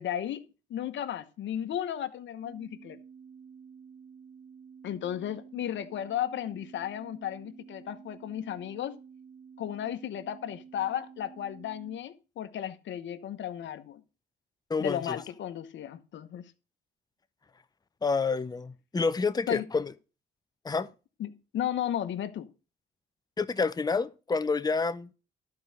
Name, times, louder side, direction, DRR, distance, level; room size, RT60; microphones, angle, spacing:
voice 1, 0.0-3.0 4.8-9.0 9.6-14.0 14.8-16.4 19.5-19.7 21.2-22.5, left 10 dB, 70° left, 1.1 m, -34 dB
sound 1, 2.4-12.0, right 6 dB, 80° right, 1.9 m, -51 dB
voice 2, 14.7-15.2 18.0-19.9 20.6-20.9 23.4-25.1, left 4 dB, 20° left, 0.7 m, -28 dB
11.5 x 4.7 x 6.5 m
cardioid pair, 90°, 20 cm